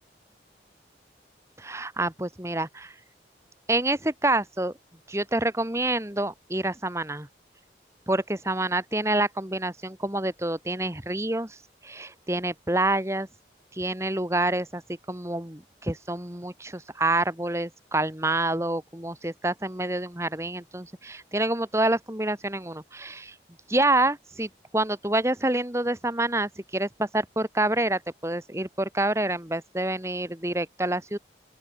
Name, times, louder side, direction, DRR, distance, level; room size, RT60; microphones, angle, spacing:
voice 1, 1.6-2.9 3.7-4.7 5.1-7.3 8.1-11.6 11.8-13.3 13.7-14.8 15.1-23.3 23.7-31.2, right 2 dB, 15° right, 1.6 m, -27 dB
open air
head